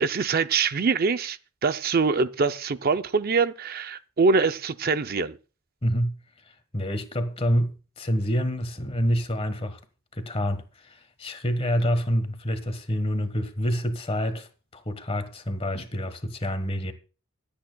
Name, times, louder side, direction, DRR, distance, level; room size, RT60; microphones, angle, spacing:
voice 1, 0.0-5.4, right 4 dB, 45° right, 0.5 m, -24 dB
voice 2, 5.8-6.2 6.5-9.8 10.1-16.9, equal, 30° left, 1.3 m, -27 dB
25.5 x 8.7 x 2.3 m
head